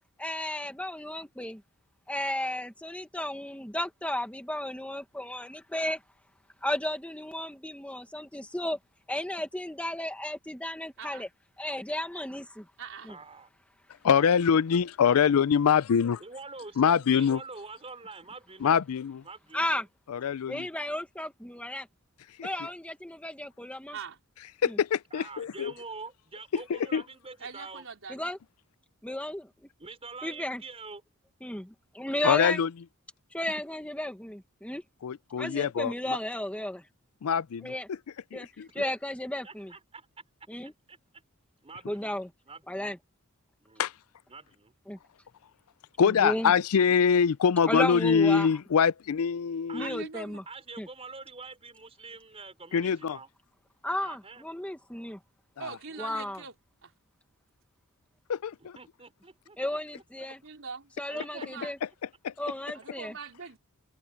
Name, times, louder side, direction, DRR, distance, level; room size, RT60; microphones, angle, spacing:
voice 1, 0.2-1.6 2.1-6.0 6.6-8.8 9.1-11.3 11.6-12.6 13.1-13.2 19.5-19.9 20.5-21.9 22.4-24.0 24.6-24.8 28.1-28.4 29.0-29.5 30.2-30.6 31.4-32.6 33.3-34.8 35.4-36.8 37.6-37.9 38.3-38.5 38.7-39.7 40.5-40.7 41.9-42.3 42.7-43.0 44.9-45.0 46.2-46.5 47.7-48.5 49.7-50.4 50.8-50.9 53.8-55.2 56.0-56.4 59.6-60.4 61.0-61.8 62.4-63.1, left 1 dB, 5° left, 1.4 m, -34 dB
voice 2, 11.0-11.3 12.8-13.1 23.9-24.2 27.4-28.3 49.8-50.4 55.6-56.5 56.8-56.9 60.2-61.7 62.7-63.6, right 5 dB, 60° right, 4.4 m, -43 dB
voice 3, 13.1-13.5 15.1-15.2 16.2-18.8 19.2-19.9 25.1-27.8 29.8-31.0 38.7-38.9 39.4-40.1 40.6-41.0 41.6-42.2 42.4-42.9 43.6-43.9 44.3-44.7 46.1-46.6 49.7-50.0 50.5-53.3 54.0-54.5 55.9-56.3 58.6-59.8 61.1-61.5, right 4 dB, 25° right, 4.9 m, -46 dB
voice 4, 14.0-16.2 16.8-17.4 18.6-19.2 20.1-20.7 22.4-22.5 24.6-25.7 26.5-27.0 32.2-32.7 35.0-36.2 37.2-38.0 38.3-38.7 43.8-43.9 46.0-50.1 52.7-53.2 55.6-55.7 58.3-58.8 62.2-62.3, left 7 dB, 70° left, 0.4 m, -24 dB
head